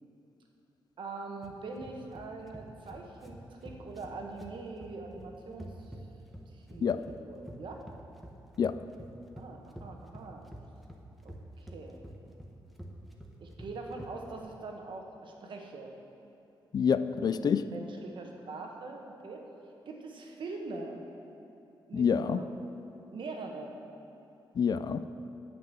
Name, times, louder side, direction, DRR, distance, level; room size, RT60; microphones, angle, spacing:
voice 1, 1.0-5.9 6.5-7.0 7.2-7.8 9.4-10.4 11.2-11.3 11.6-12.0 13.4-15.9 17.4-19.5 19.9-21.0 21.9-22.5 23.1-23.7, right 3 dB, 70° right, 2 dB, 1.2 m, -43 dB
sound 1, 1.4-14.4, right 1 dB, ahead, 1.0 m, -48 dB
voice 2, 16.7-17.7 21.9-22.4 24.6-25.0, left 7 dB, 50° left, 12 dB, 0.4 m, -27 dB
8.9 x 6.0 x 7.6 m, 2.9 s
wide cardioid pair, 110°, 9 cm